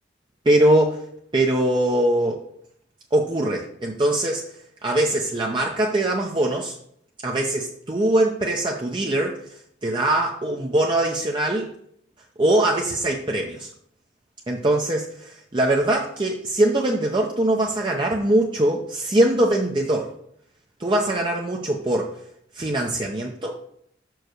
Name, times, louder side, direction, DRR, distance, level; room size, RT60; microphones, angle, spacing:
voice 1, 0.4-1.0 1.3-2.4 3.1-4.5 4.8-6.7 7.2-9.4 9.8-11.7 12.4-13.7 14.5-20.1 20.8-22.2 22.5-23.6, right 1 dB, 25° right, 0 dB, 0.7 m, -22 dB
5.8 x 4.7 x 6.5 m, 0.69 s
head